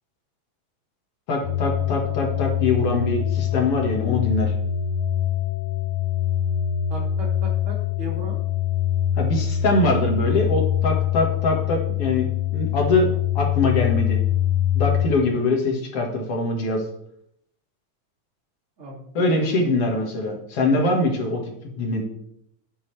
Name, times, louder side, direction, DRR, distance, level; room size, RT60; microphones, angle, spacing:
voice 1, 1.3-4.5 9.2-12.3 12.5-13.1 13.4-14.2 14.7-16.8 19.1-22.0, left 2 dB, 55° left, 1 dB, 2.5 m, -23 dB
sound 1, 1.4-15.1, left 10 dB, 90° left, 2.3 m, -24 dB
voice 2, 6.9-8.4 18.8-19.8, equal, 25° right, -2 dB, 2.8 m, -36 dB
10.5 x 9.4 x 3.3 m, 0.71 s
omnidirectional pair, 3.3 m